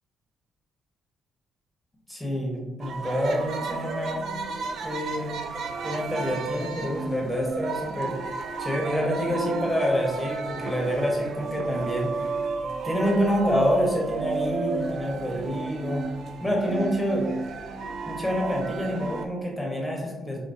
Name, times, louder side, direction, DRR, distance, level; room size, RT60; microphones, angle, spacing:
voice 1, 2.1-4.3 4.8-5.3 5.8-8.2 8.6-12.3 12.8-16.1 16.4-17.3 18.1-20.4, equal, 5° left, -1 dB, 1.3 m, -27 dB
sound 1, 2.8-19.3, right 4 dB, 65° right, 0.5 m, -33 dB
5.0 x 3.5 x 2.7 m, 1.1 s
cardioid pair, 90°, 0 cm